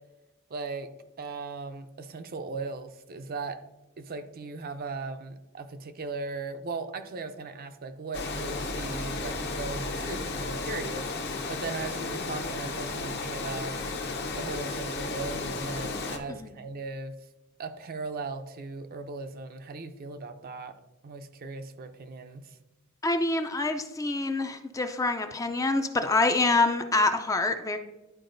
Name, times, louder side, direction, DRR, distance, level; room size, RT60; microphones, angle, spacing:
voice 1, 0.5-0.9 1.2-3.6 4.0-13.8 14.4-17.1 17.6-20.8 21.0-22.6, right 3 dB, 45° right, 8 dB, 0.5 m, -38 dB
Water, 8.1-16.2, left 3 dB, 50° left, 0.8 m, -33 dB
voice 2, 23.0-27.8, left 2 dB, 15° left, 7 dB, 0.4 m, -26 dB
11.0 x 4.6 x 2.6 m, 1.1 s
head